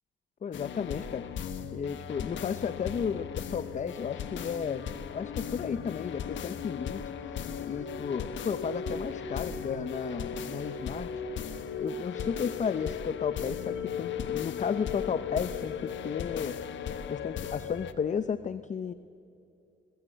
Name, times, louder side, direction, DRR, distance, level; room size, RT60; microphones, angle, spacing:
voice 1, 0.4-1.4 1.7-7.4 7.6-11.1 11.8-16.6 17.1-18.9, left 7 dB, 40° left, 13 dB, 0.7 m, -33 dB
sound 1, 0.5-17.9, left 7 dB, 70° left, 1.3 m, -37 dB
22.0 x 21.5 x 7.9 m, 2.7 s
cardioid pair, 90°, 20 cm